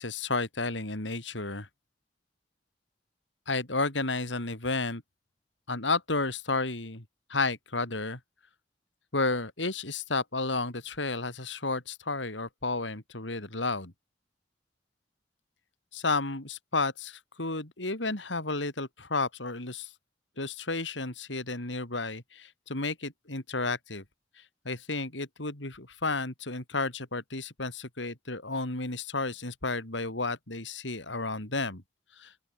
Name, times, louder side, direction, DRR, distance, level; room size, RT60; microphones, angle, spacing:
voice 1, 0.0-1.7 3.5-5.0 5.7-7.0 7.3-8.2 9.1-13.9 15.9-19.9 20.4-24.0 24.6-31.8 32.2-32.3, left 3 dB, 85° left, 4.2 m, -32 dB
open air
head